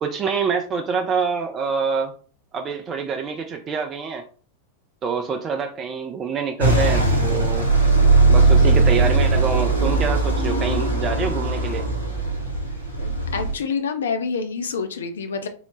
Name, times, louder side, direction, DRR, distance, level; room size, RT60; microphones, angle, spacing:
voice 1, 0.0-2.1 2.5-4.2 5.0-7.7 8.3-11.8, right 5 dB, 25° right, 4 dB, 0.3 m, -26 dB
sound 1, 6.6-13.5, right 3 dB, 85° right, 0.8 m, -19 dB
voice 2, 13.0-15.5, left 5 dB, 65° left, 7 dB, 0.4 m, -27 dB
3.7 x 2.0 x 3.1 m, 0.42 s
figure-of-eight pair, 90°, 0 cm